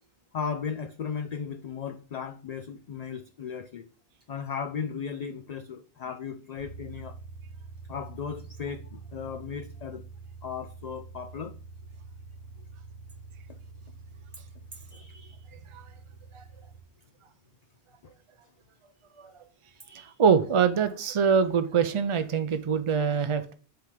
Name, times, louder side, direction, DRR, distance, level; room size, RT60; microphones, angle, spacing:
voice 1, 0.3-3.9 4.3-7.2 7.9-10.0 10.4-11.5 13.5-13.6 14.9-15.4 19.9-20.2, left 6 dB, 55° left, 0.4 m, -36 dB
sound 1, 6.6-16.8, right 4 dB, 85° left, 1.9 m, -46 dB
voice 2, 19.9-23.5, right 6 dB, 50° right, 0.3 m, -24 dB
7.9 x 3.5 x 5.0 m
omnidirectional pair, 1.1 m